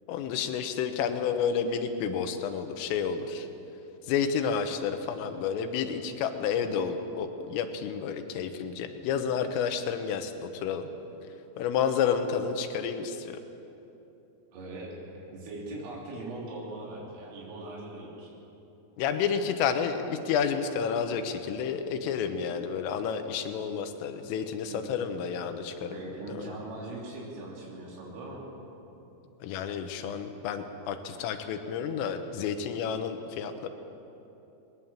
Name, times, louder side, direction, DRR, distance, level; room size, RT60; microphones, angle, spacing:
voice 1, 0.1-3.5 4.1-10.9 11.6-13.4 19.0-25.9 26.3-26.6 29.4-33.7, left 7 dB, 90° left, 7 dB, 3.8 m, -30 dB
voice 2, 14.5-14.9 15.3-18.3 24.7-24.8 25.8-28.5, right 2 dB, 85° right, -4 dB, 5.8 m, -40 dB
20.5 x 19.5 x 7.4 m, 2.9 s
omnidirectional pair, 5.7 m